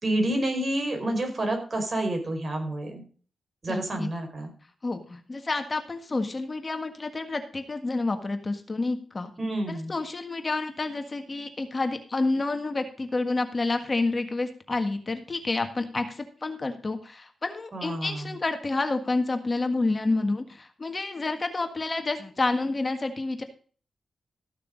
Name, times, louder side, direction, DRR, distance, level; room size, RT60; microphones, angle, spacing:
voice 1, 0.0-3.0 3.6-4.5 9.4-9.9 17.7-18.3, right 1 dB, 40° right, 3 dB, 4.8 m, -29 dB
voice 2, 3.7-4.1 4.8-9.3 9.7-23.4, left 3 dB, 35° left, 7 dB, 1.6 m, -29 dB
14.5 x 6.6 x 5.1 m, 0.42 s
cardioid pair, 60°, 0 cm